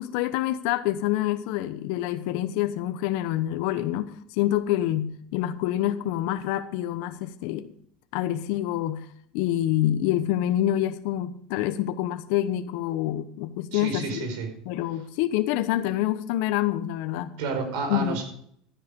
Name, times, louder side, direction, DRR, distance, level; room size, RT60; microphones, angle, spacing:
voice 1, 0.0-7.7 8.1-9.1 9.3-14.3 14.7-17.4 17.9-18.2, left 13 dB, 75° left, 10 dB, 1.0 m, -27 dB
voice 2, 13.7-14.5 17.4-18.2, right 4 dB, 75° right, 5 dB, 4.8 m, -30 dB
12.5 x 10.0 x 5.2 m, 0.65 s
supercardioid pair, 130°, 2 cm